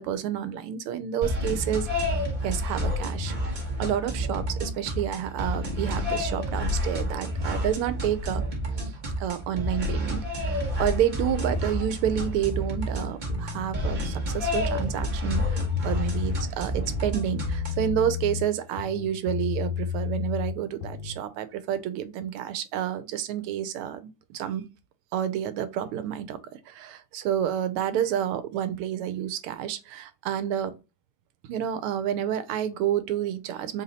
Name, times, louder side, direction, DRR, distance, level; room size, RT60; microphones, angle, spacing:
voice 1, 0.0-1.9 2.4-3.4 3.8-8.4 8.8-8.9 9.2-24.7 25.1-30.8 31.5-33.8, right 10 dB, 85° right, 1.5 m, -29 dB
sound 1, 1.2-17.9, equal, 40° right, 0.7 m, -30 dB
sound 2, 13.3-14.3 14.7-16.5 16.8-18.5 18.8-21.2, left 8 dB, 70° left, 1.4 m, -32 dB
3.7 x 2.8 x 3.9 m
omnidirectional pair, 2.4 m